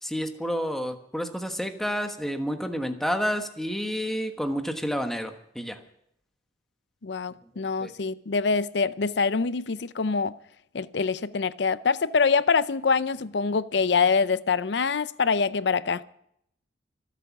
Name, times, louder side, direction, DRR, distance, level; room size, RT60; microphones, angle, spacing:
voice 1, 0.0-5.8 7.5-7.9, equal, ahead, 1.3 m, -30 dB
voice 2, 7.0-10.3 10.7-16.0, left 5 dB, 65° left, 0.6 m, -25 dB
25.0 x 8.3 x 6.0 m
head